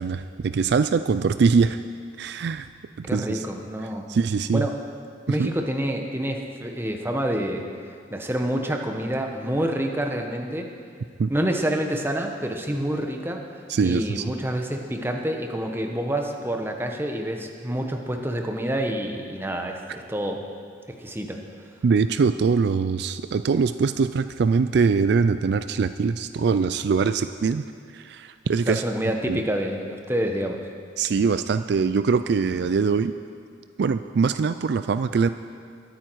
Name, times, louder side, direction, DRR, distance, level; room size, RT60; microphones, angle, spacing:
voice 1, 0.0-1.8 2.2-2.7 3.0-3.4 4.1-4.7 5.3-5.5 11.2-11.3 13.7-14.2 21.8-27.6 27.9-28.8 29.3-29.4 31.0-33.1 33.8-35.3, right 5 dB, 60° right, 11 dB, 0.3 m, -22 dB
voice 2, 3.0-4.1 4.5-4.8 5.3-7.7 8.1-10.7 11.3-13.4 13.8-20.4 20.9-21.4 28.7-30.6, right 1 dB, 10° right, 3 dB, 1.0 m, -27 dB
22.0 x 9.0 x 4.7 m, 2.2 s
head